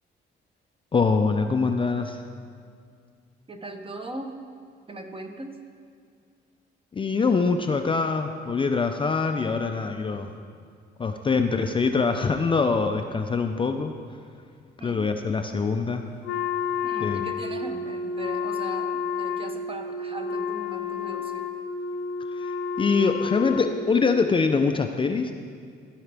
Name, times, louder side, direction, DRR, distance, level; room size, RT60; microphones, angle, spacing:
voice 1, 0.9-2.2 6.9-10.3 11.0-13.9 14.8-16.1 17.0-17.3 22.4-25.3, left 4 dB, 25° left, 5 dB, 0.4 m, -24 dB
voice 2, 3.5-4.4 4.9-5.6 14.8-15.1 16.8-21.5, right 1 dB, 25° right, 5 dB, 0.8 m, -39 dB
Wind instrument woodwind instrument, 16.2-24.2, left 5 dB, 80° left, 0.7 m, -30 dB
14.0 x 4.9 x 3.4 m, 2.2 s
cardioid pair, 90°, 20 cm